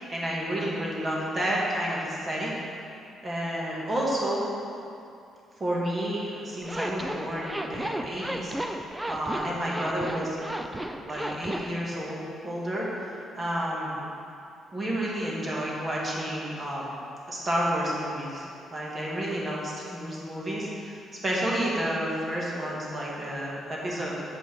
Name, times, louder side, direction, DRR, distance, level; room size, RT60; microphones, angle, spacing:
voice 1, 0.0-2.5 3.2-4.5 5.6-10.4 11.0-13.1 13.4-14.0 14.7-16.9 17.3-24.2, right 1 dB, 25° right, -5 dB, 1.8 m, -30 dB
Zipper (clothing), 6.6-11.7, right 1 dB, 10° right, 0.4 m, -33 dB
7.9 x 5.3 x 5.1 m, 2.5 s
cardioid pair, 125°, 0 cm